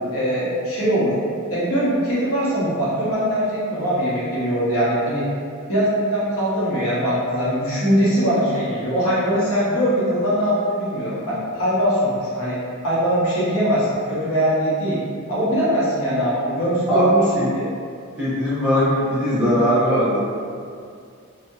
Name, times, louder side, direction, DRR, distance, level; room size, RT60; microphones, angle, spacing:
voice 1, 0.1-1.1 1.5-5.2 5.7-12.5 12.8-15.0 15.3-17.2 17.5-17.6, equal, 70° left, -8 dB, 0.8 m, -21 dB
voice 2, 18.2-20.2, equal, 5° right, -12 dB, 0.6 m, -20 dB
2.6 x 2.1 x 2.3 m, 2.3 s
head